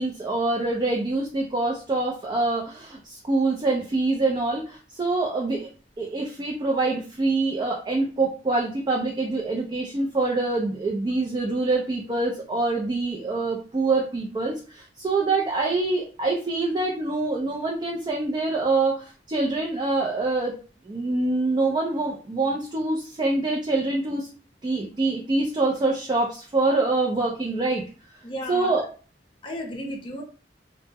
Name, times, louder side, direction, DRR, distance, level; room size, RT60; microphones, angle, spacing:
voice 1, 0.0-5.7 6.0-20.5 20.8-24.3 24.6-27.8 28.5-28.8, right 3 dB, 25° right, -1 dB, 0.3 m, -25 dB
voice 2, 28.2-28.7 29.4-30.2, equal, 30° left, 1 dB, 0.6 m, -33 dB
2.0 x 2.0 x 3.3 m, 0.37 s
head